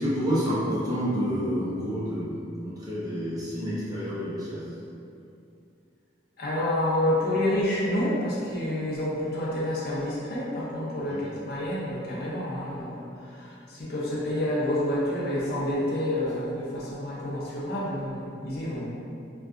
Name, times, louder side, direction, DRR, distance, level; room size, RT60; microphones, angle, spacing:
voice 1, 0.0-4.6 11.0-11.2, equal, 20° right, -9 dB, 0.5 m, -29 dB
voice 2, 6.4-18.9, left 1 dB, 50° left, -6 dB, 0.5 m, -28 dB
2.6 x 2.2 x 2.3 m, 2.5 s
head